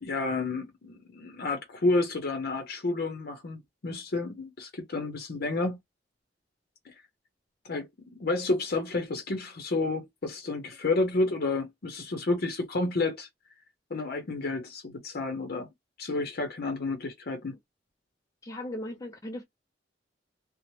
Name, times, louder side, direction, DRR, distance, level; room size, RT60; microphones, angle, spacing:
voice 1, 0.0-5.8 6.9-7.0 7.6-13.3 13.9-15.7 16.0-17.5, left 2 dB, 60° left, 0.6 m, -30 dB
voice 2, 18.4-19.4, left 1 dB, 20° left, 0.4 m, -37 dB
3.0 x 2.0 x 2.7 m
head